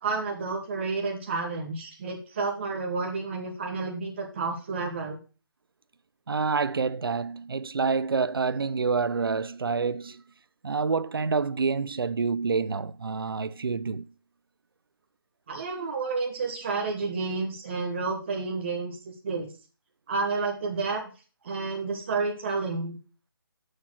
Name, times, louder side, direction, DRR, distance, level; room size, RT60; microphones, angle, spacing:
voice 1, 0.0-5.2 15.5-19.5 20.1-21.0 21.4-23.0, right 4 dB, 30° right, 1.2 m, -30 dB
voice 2, 6.3-10.2 10.6-14.0, right 5 dB, 75° right, 0.5 m, -27 dB
6.5 x 5.8 x 6.1 m
figure-of-eight pair, 165°, 12 cm